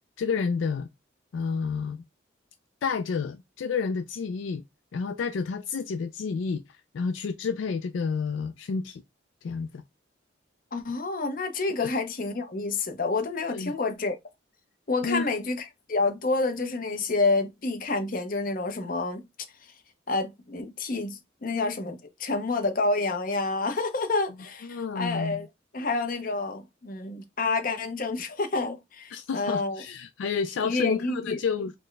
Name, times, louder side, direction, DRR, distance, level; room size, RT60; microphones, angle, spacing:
voice 1, 0.2-0.9 1.3-2.0 2.8-4.6 4.9-9.0 9.4-9.8 11.8-11.9 13.5-13.7 15.0-15.3 24.6-25.4 29.1-31.7, left 5 dB, 70° left, 0.3 m, -30 dB
voice 2, 10.7-14.2 14.9-19.2 20.1-25.5 25.7-29.8 30.6-31.4, left 3 dB, 45° left, 0.7 m, -28 dB
4.2 x 2.1 x 3.2 m
head